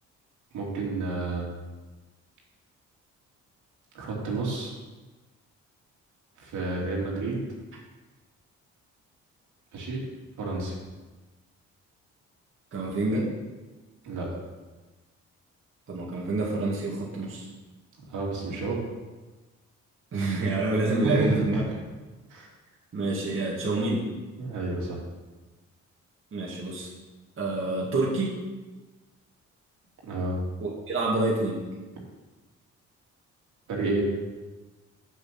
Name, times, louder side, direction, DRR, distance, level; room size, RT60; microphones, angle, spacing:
voice 1, 0.5-1.5 3.9-4.7 6.4-7.4 9.7-10.0 10.4-10.8 14.0-14.3 18.1-18.8 21.0-21.6 22.3-22.5 24.4-25.0 30.1-30.4 33.7-34.0, right 2 dB, 75° right, -3 dB, 2.8 m, -30 dB
voice 2, 12.7-13.3 15.9-17.5 20.1-21.6 22.9-24.1 26.3-26.9 27.4-28.4 30.6-31.7, right 2 dB, 45° right, -5 dB, 2.3 m, -27 dB
7.3 x 7.1 x 6.0 m, 1.2 s
cardioid pair, 90°, 30 cm